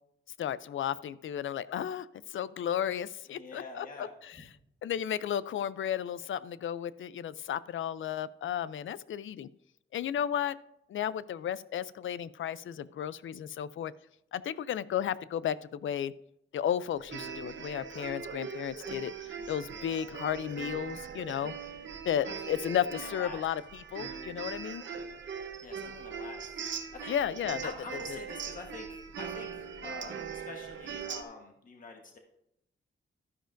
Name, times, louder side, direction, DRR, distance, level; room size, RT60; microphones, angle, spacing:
voice 1, 0.4-4.4 4.8-9.5 9.9-10.6 10.9-13.9 14.3-16.1 16.5-21.5 22.1-24.8 27.1-27.7 28.1-28.2, left 9 dB, 80° left, 17 dB, 0.4 m, -33 dB
voice 2, 3.3-4.1 4.4-4.5 19.7-20.0 22.3-22.5 23.0-23.4 25.6-26.5 26.9-27.1 27.6-32.2, left 3 dB, 45° left, 2 dB, 1.3 m, -46 dB
sound 1, 17.0-31.2, right 6 dB, 70° right, 0.9 m, -41 dB
12.5 x 10.0 x 2.6 m, 0.79 s
wide cardioid pair, 175°, 20 cm